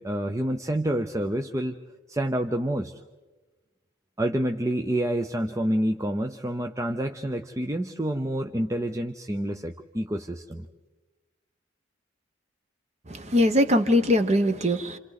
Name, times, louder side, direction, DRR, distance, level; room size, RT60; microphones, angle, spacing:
voice 1, 0.0-1.8 2.1-3.0 4.2-10.7, right 1 dB, 15° right, 5 dB, 0.6 m, -28 dB
voice 2, 13.1-15.0, left 1 dB, 35° right, 9 dB, 1.1 m, -22 dB
30.0 x 27.5 x 4.1 m, 1.2 s
head